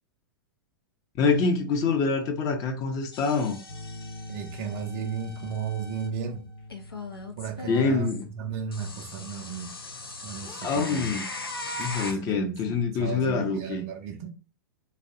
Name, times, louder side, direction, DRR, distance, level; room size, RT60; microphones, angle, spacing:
voice 1, 1.2-3.6 7.7-8.3 10.6-11.3 11.8-13.8, left 4 dB, 30° left, 0.5 m, -25 dB
sound 1, 3.1-6.1 6.7-8.2 8.7-12.1, left 2 dB, 85° left, 0.5 m, -39 dB
sound 2, 3.7-10.9, left 1 dB, 55° left, 0.9 m, -46 dB
voice 2, 4.3-6.5 7.4-9.7 10.2-11.1 12.2-14.3, right 8 dB, 40° right, 0.4 m, -35 dB
2.5 x 2.0 x 2.4 m
figure-of-eight pair, 100°, 12 cm